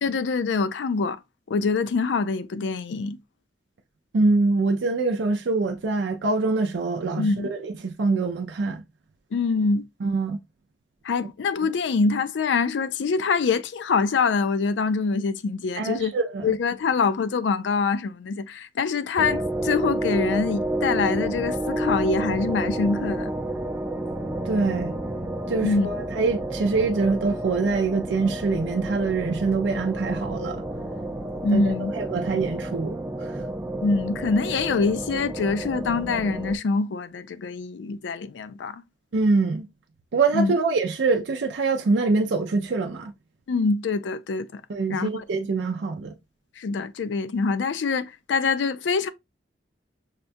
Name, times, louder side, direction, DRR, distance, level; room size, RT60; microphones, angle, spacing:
voice 1, 0.0-1.2 1.5-3.2 7.2-7.5 9.3-9.8 11.0-16.1 16.4-23.3 25.6-25.9 31.4-31.9 33.8-38.8 40.3-40.5 43.5-44.6 44.9-45.2 46.6-49.1, left 4 dB, 80° left, 0.4 m, -25 dB
voice 2, 4.1-8.8 10.0-10.4 15.8-16.5 24.5-25.0 25.5-30.6 31.5-33.5 39.1-39.7 40.1-43.1 44.7-46.1, right 3 dB, 80° right, 0.5 m, -24 dB
sound 1, 19.2-36.6, right 1 dB, 10° right, 0.5 m, -30 dB
5.7 x 2.2 x 2.5 m
head